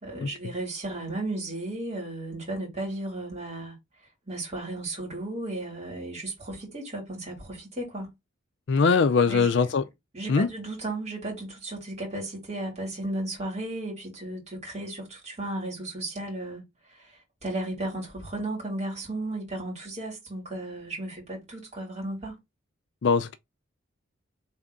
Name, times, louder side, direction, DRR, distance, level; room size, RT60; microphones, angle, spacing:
voice 1, 0.0-3.8 4.3-8.1 9.3-9.7 10.1-16.6 16.9-17.1 17.4-22.4, right 2 dB, 30° right, 2.9 m, -34 dB
voice 2, 8.7-9.8 10.3-10.5 23.0-23.4, left 5 dB, 55° left, 0.4 m, -21 dB
3.6 x 3.5 x 3.9 m
head